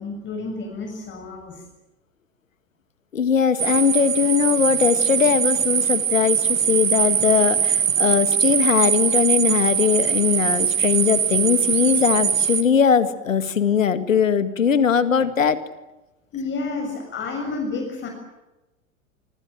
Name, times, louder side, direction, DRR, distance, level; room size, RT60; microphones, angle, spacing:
voice 1, 0.0-1.6 16.3-18.1, left 3 dB, 30° left, 4 dB, 7.1 m, -30 dB
voice 2, 3.1-15.6, left 7 dB, 75° left, 11 dB, 2.2 m, -20 dB
sound 1, 3.6-12.6, right 8 dB, 75° right, 2.3 m, -21 dB
26.0 x 25.0 x 7.7 m, 1.0 s
figure-of-eight pair, 90°, 40 cm